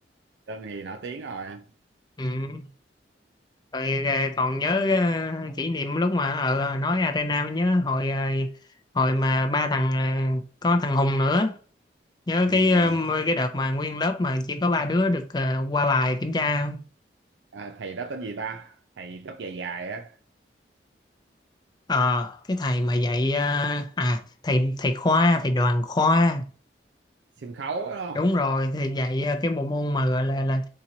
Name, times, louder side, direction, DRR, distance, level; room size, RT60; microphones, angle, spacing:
voice 1, 0.5-1.7 12.5-13.0 17.5-20.2 27.4-28.3, right 4 dB, 80° right, 0.5 m, -35 dB
voice 2, 2.2-2.6 3.7-8.5 8.9-11.6 12.3-16.8 21.9-26.4 28.2-30.7, left 2 dB, 25° left, 0.5 m, -24 dB
4.3 x 2.9 x 3.8 m
head